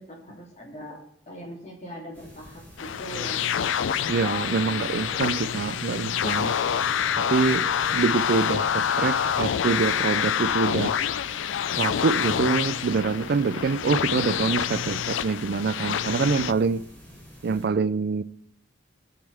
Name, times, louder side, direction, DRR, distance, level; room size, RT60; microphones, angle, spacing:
voice 1, 0.0-3.5 4.4-5.0, equal, 35° left, -1 dB, 2.8 m, -41 dB
sound 1, 2.1-17.7, equal, 10° left, 3.7 m, -47 dB
sound 2, 2.8-16.5, left 8 dB, 85° left, 0.4 m, -27 dB
sound 3, 3.7-13.6, right 2 dB, 20° right, 1.7 m, -48 dB
voice 2, 4.1-6.6 7.2-7.7 7.9-10.9 11.8-16.8 17.4-18.2, right 4 dB, 55° right, 14 dB, 0.4 m, -25 dB
16.5 x 7.9 x 3.4 m, 0.69 s
head